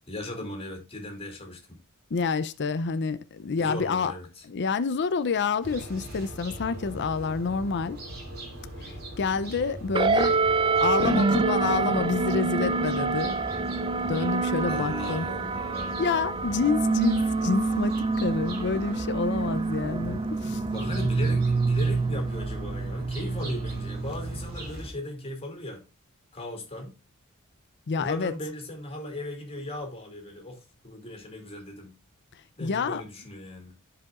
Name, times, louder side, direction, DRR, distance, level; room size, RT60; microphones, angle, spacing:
voice 1, 0.1-1.8 3.6-4.4 14.7-16.5 20.7-25.9 26.3-26.9 28.0-31.9 32.6-33.7, left 1 dB, 25° left, 2.4 m, -38 dB
voice 2, 2.1-4.1 4.5-8.0 8.8-10.4 10.8-13.4 14.1-15.3 16.0-20.6 27.9-28.3 32.3-33.0, left 5 dB, 50° left, 0.5 m, -28 dB
sound 1, 5.6-24.9, right 1 dB, 45° right, 2.7 m, -40 dB
sound 2, 9.9-24.7, right 4 dB, 20° right, 0.4 m, -27 dB
13.5 x 4.9 x 2.4 m
head